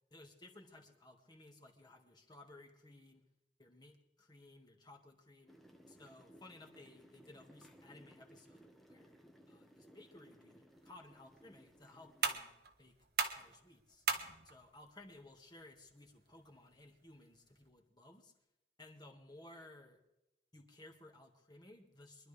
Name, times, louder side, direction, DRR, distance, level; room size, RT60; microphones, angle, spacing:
voice 1, 0.1-3.2 3.6-5.5 5.9-9.2 9.5-12.5 12.8-13.0 13.4-14.0 14.4-18.3 18.8-20.0 20.5-22.3, left 2 dB, 25° left, 3 dB, 1.8 m, -58 dB
sound 1, 5.5-12.4, equal, ahead, 1.3 m, -62 dB
sound 2, 10.7-17.7, right 6 dB, 60° right, 1.4 m, -43 dB
24.0 x 12.0 x 3.4 m, 0.91 s
head